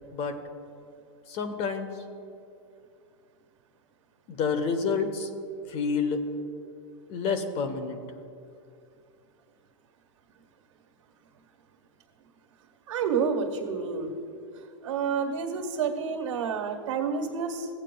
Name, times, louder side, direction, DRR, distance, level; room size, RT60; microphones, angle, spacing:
voice 1, 1.3-1.9 4.3-5.3 5.7-6.2 7.1-8.0, left 5 dB, 40° left, 8 dB, 0.9 m, -28 dB
voice 2, 12.9-14.1 14.8-17.7, right 6 dB, 75° right, 4 dB, 1.4 m, -29 dB
15.5 x 8.9 x 2.3 m, 2.5 s
supercardioid pair, 140°, 16 cm